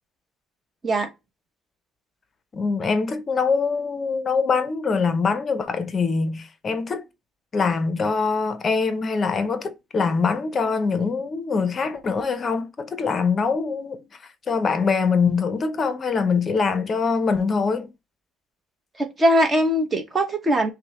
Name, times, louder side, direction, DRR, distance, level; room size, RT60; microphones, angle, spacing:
voice 1, 2.5-7.1 7.5-14.0 14.5-17.9, left 5 dB, 30° left, 0.6 m, -23 dB
voice 2, 19.0-20.7, equal, 20° right, 0.9 m, -21 dB
5.9 x 2.1 x 3.0 m
cardioid pair, 135°, 0 cm